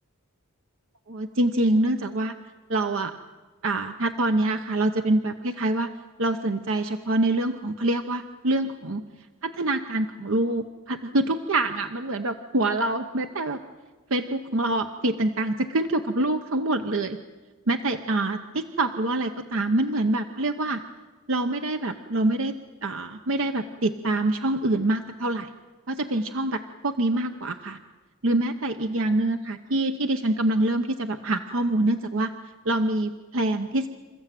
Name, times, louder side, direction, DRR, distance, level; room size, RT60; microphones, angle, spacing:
voice 1, 1.1-2.3 2.7-3.1 3.6-5.9 6.2-9.0 9.4-13.6 14.1-17.2 17.7-20.8 21.3-22.6 22.8-25.5 25.9-27.8 28.2-32.3 32.6-33.9, right 2 dB, 65° right, 7 dB, 0.8 m, -25 dB
27.5 x 14.5 x 9.1 m, 1.4 s
head